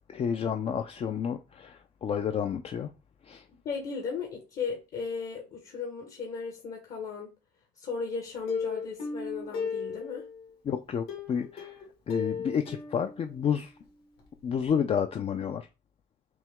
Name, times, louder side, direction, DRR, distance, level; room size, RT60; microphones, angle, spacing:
voice 1, 0.1-2.9 3.3-3.4 10.7-11.8 12.1-13.7 14.4-15.7, left 7 dB, 35° left, 0.4 m, -30 dB
voice 2, 3.6-7.3 7.8-10.2, left 5 dB, 55° left, 1.2 m, -36 dB
Plucked string instrument, 8.5-10.5 11.1-13.9 14.2-14.3 14.6-14.7, left 5 dB, 70° left, 1.9 m, -36 dB
5.9 x 2.2 x 3.5 m
cardioid pair, 110°, 17 cm